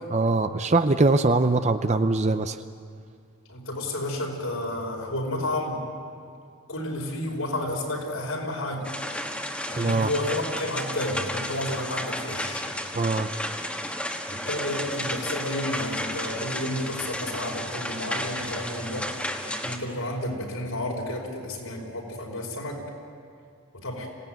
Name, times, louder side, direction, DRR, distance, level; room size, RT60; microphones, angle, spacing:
voice 1, 0.1-2.6 9.8-10.1 12.9-13.3, right 3 dB, 30° right, 9 dB, 0.6 m, -22 dB
voice 2, 3.5-5.8 6.7-8.9 9.7-12.6 14.3-22.8 23.7-24.1, left 1 dB, 75° left, -1 dB, 5.2 m, -31 dB
sound 1, 8.8-19.8, left 1 dB, 5° left, 1.4 m, -33 dB
26.0 x 17.5 x 9.1 m, 2.3 s
head